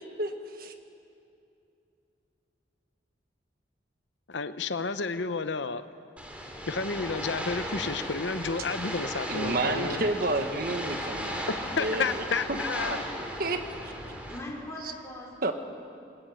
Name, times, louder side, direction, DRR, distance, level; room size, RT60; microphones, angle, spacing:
voice 1, 4.3-5.8 6.7-10.0 10.7-10.8 11.8-13.0, left 4 dB, 70° left, 11 dB, 0.8 m, -31 dB
sound 1, 6.2-14.4, equal, 5° right, 2.8 m, -36 dB
voice 2, 9.3-12.2 12.5-12.6 13.4-13.6 15.4-15.5, right 2 dB, 50° right, 6 dB, 1.6 m, -30 dB
voice 3, 11.3-11.7 14.3-15.5, left 1 dB, 15° left, -3 dB, 4.5 m, -41 dB
20.5 x 20.5 x 8.9 m, 2.6 s
head